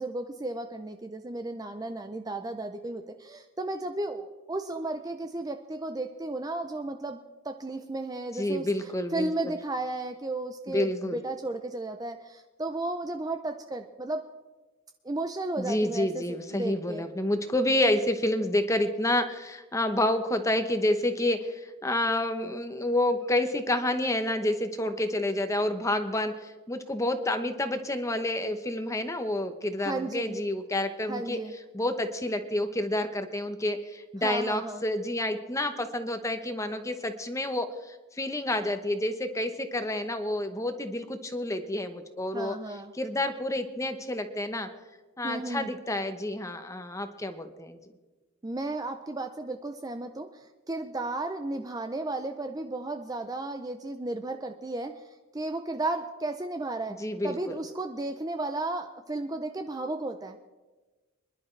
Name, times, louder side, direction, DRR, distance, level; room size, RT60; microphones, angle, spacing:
voice 1, 0.0-14.2 15.0-17.0 29.8-30.4 31.1-31.5 34.2-34.8 42.3-42.9 45.2-45.7 48.4-55.0 55.3-57.0 57.2-60.4, right 2 dB, 15° right, 7 dB, 0.5 m, -34 dB
voice 2, 8.4-9.5 10.7-11.2 15.6-31.4 31.7-42.5 42.9-44.7 45.2-47.8 57.0-57.6, left 1 dB, 15° left, 8 dB, 0.9 m, -29 dB
25.5 x 11.5 x 3.3 m, 1.2 s
head